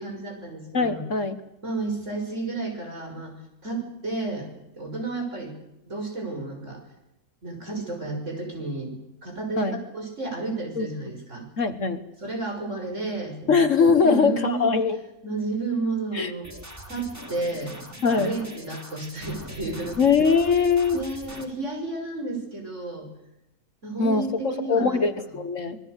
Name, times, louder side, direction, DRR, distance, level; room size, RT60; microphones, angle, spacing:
voice 1, 0.0-1.0 1.6-3.4 3.6-4.5 4.8-5.5 5.9-6.8 7.4-11.5 12.2-13.6 14.0-14.8 15.2-16.5 16.9-17.8 18.1-20.0 20.9-23.1 23.8-25.0, right 3 dB, 50° right, 3 dB, 6.6 m, -31 dB
voice 2, 0.7-1.4 9.6-9.8 10.8-10.9 11.6-12.0 13.5-15.0 16.1-16.3 18.0-18.3 20.0-21.0 24.0-25.8, left 5 dB, 55° left, 10 dB, 1.6 m, -22 dB
sound 1, 16.4-21.4, equal, 10° right, 3.3 m, -42 dB
26.0 x 21.0 x 8.2 m, 0.86 s
omnidirectional pair, 1.6 m